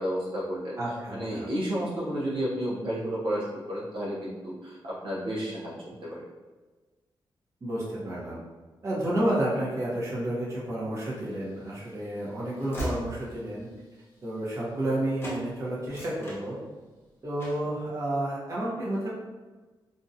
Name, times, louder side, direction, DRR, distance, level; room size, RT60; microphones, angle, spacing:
voice 1, 0.0-0.7 1.1-6.2, equal, 75° right, -6 dB, 0.6 m, -32 dB
voice 2, 0.8-1.4 7.6-8.4 8.8-13.7 14.2-16.6 17.2-19.2, right 1 dB, 35° right, -7 dB, 0.8 m, -30 dB
Train / Slam, 11.3-14.9 15.2-15.4 15.8-17.0 17.4-17.7, equal, 25° left, 0.6 m, -40 dB
2.5 x 2.2 x 2.6 m, 1.3 s
wide cardioid pair, 180°, 9 cm